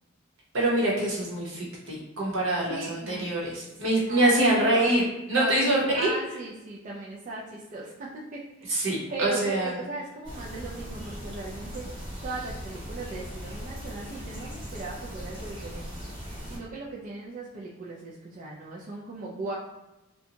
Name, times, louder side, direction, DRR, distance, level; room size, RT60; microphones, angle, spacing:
voice 1, 0.5-6.1 8.7-9.7, right 1 dB, 65° right, -5 dB, 0.9 m, -25 dB
voice 2, 2.7-3.3 3.9-4.9 5.3-8.8 9.1-11.9 12.2-16.0 16.5-19.5, right 2 dB, 40° right, -6 dB, 0.3 m, -38 dB
sound 1, 10.2-16.6, equal, 20° right, 0.9 m, -39 dB
2.6 x 2.2 x 2.7 m, 1.0 s
head